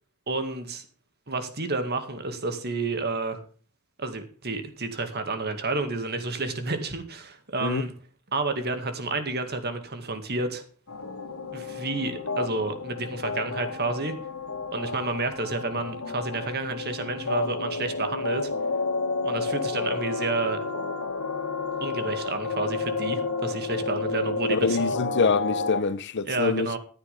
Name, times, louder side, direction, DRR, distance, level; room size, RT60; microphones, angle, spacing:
voice 1, 0.3-0.9 1.3-3.4 4.0-7.9 8.3-10.6 11.5-14.1 14.7-18.5 19.2-20.6 21.8-25.0 26.2-26.8, right 3 dB, 50° right, 2.1 m, -30 dB
sound 1, 10.9-25.8, left 4 dB, 85° left, 2.1 m, -31 dB
voice 2, 24.5-26.7, left 4 dB, 55° left, 0.7 m, -25 dB
14.0 x 10.0 x 3.5 m
head